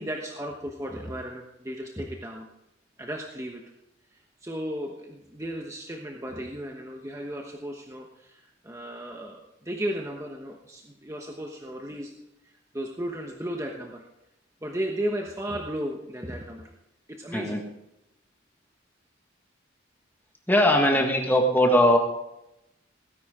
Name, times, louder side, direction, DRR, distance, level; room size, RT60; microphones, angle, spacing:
voice 1, 0.0-2.5 3.0-3.6 4.1-12.1 12.4-14.1 14.6-16.7 17.1-17.6, equal, 15° right, 1 dB, 1.1 m, -35 dB
voice 2, 20.5-22.0, left 1 dB, 10° left, 1 dB, 1.5 m, -20 dB
17.5 x 10.5 x 3.7 m, 0.86 s
head